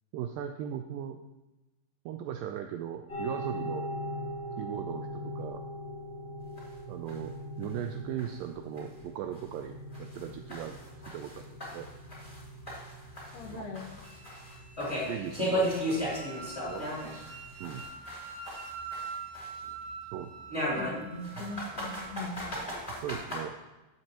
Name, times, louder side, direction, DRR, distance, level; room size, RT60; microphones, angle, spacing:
voice 1, 0.1-1.2 2.1-3.9 4.6-5.6 6.9-10.8 11.1-11.9 13.4-13.7 15.1-17.3 17.6-17.8 20.1-20.3 21.4-21.5 22.9-23.5, right 10 dB, 85° right, 6 dB, 2.0 m, -38 dB
sound 1, 3.1-17.8, equal, 35° left, 2.4 m, -42 dB
sound 2, 6.6-6.7 7.1-7.2 7.6-7.7 8.2-8.3 8.8-8.9 9.3-9.4 9.9-12.4 12.7-17.3 17.6-19.7 20.5-23.4, equal, 10° left, 2.3 m, -35 dB
voice 2, 13.3-13.9 20.7-22.5, left 2 dB, 85° left, 2 dB, 3.3 m, -40 dB
Wind instrument woodwind instrument, 14.0-22.2, right 5 dB, 55° right, 3.3 m, -45 dB
12.5 x 7.7 x 2.9 m, 1.0 s
omnidirectional pair, 4.5 m